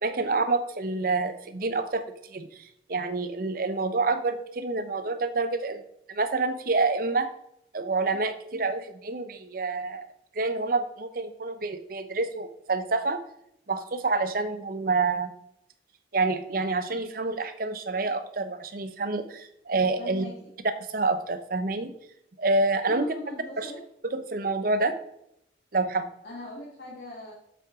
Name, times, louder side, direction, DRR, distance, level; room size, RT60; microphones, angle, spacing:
voice 1, 0.0-2.0 2.3-2.5 2.9-5.8 6.1-7.3 7.7-10.1 10.4-13.2 13.7-15.3 16.1-20.2 20.9-21.9 22.4-23.1 23.6-23.7 24.1-24.9 25.7-26.1, right 3 dB, 50° right, 10 dB, 0.7 m, -27 dB
voice 2, 20.0-20.5 22.9-23.8 26.2-27.3, left 1 dB, 60° left, -4 dB, 1.8 m, -40 dB
7.8 x 7.8 x 3.6 m, 0.77 s
head